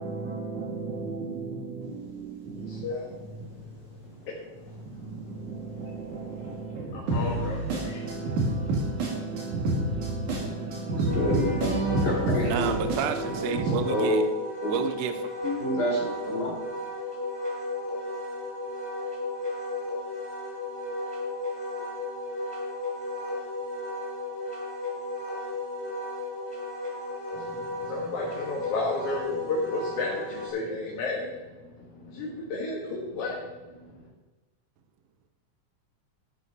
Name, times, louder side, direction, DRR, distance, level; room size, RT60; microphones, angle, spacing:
voice 1, 0.0-4.0 4.7-13.7, right 2 dB, 85° right, 3.6 m, -31 dB
voice 2, 2.7-3.1 3.5-3.6 4.2-5.0 5.8-6.0 6.7-7.5 27.3-31.4 31.9-33.4 33.8-33.9, left 3 dB, 75° left, 3.1 m, -33 dB
Wind instrument woodwind instrument, 11.0-30.5, left 2 dB, 10° left, 3.5 m, -34 dB
voice 3, 11.1-11.8 12.0-12.7 13.9-14.3 14.6-14.8 15.4-16.5, left 1 dB, 35° left, 3.8 m, -27 dB
voice 4, 12.4-14.2 14.7-15.1, right 7 dB, 70° right, 1.9 m, -30 dB
12.5 x 12.0 x 4.1 m
omnidirectional pair, 3.4 m